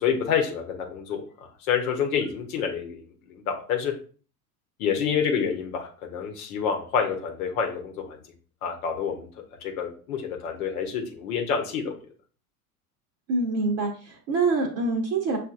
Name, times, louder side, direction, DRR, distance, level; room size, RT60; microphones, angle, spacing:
voice 1, 0.0-1.2 1.7-3.9 4.8-8.2 8.6-9.3 9.6-12.0, left 7 dB, 65° left, 3 dB, 0.9 m, -28 dB
voice 2, 13.3-15.4, right 3 dB, 40° right, 0 dB, 0.9 m, -25 dB
6.2 x 2.5 x 2.4 m, 0.40 s
figure-of-eight pair, 75°, 47 cm